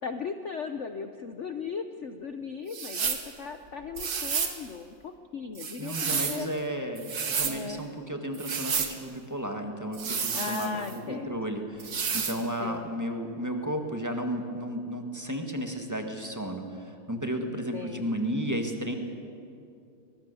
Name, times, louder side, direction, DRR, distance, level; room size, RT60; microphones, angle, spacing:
voice 1, 0.0-6.5 7.5-7.8 10.3-11.4 12.3-12.9 17.4-18.1, left 5 dB, 70° left, 8 dB, 0.6 m, -37 dB
sound 1, 2.7-3.3 4.0-4.6 5.6-6.4 7.0-7.6 8.3-8.9 9.9-11.0 11.8-12.4, right 6 dB, 50° right, 1.9 m, -30 dB
voice 2, 5.8-18.9, equal, 10° right, 4 dB, 1.6 m, -33 dB
23.5 x 20.5 x 7.0 m, 2.5 s
omnidirectional pair, 2.3 m